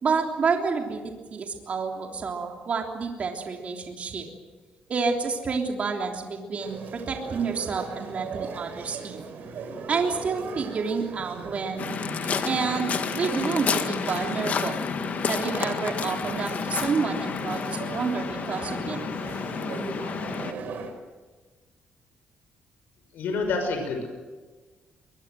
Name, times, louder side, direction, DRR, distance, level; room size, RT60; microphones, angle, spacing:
voice 1, 0.0-4.3 4.9-9.3 9.9-12.0 12.4-14.8 15.3-19.0, right 5 dB, 45° right, 2 dB, 3.4 m, -29 dB
sound 1, 6.6-20.9, right 4 dB, 70° right, 4.7 m, -38 dB
Waves surf, 11.8-20.5, left 6 dB, 50° left, 1.7 m, -30 dB
voice 2, 23.1-24.1, left 3 dB, 80° left, 4 dB, 5.8 m, -28 dB
23.0 x 21.5 x 7.7 m, 1.3 s
cardioid pair, 130°, 3 cm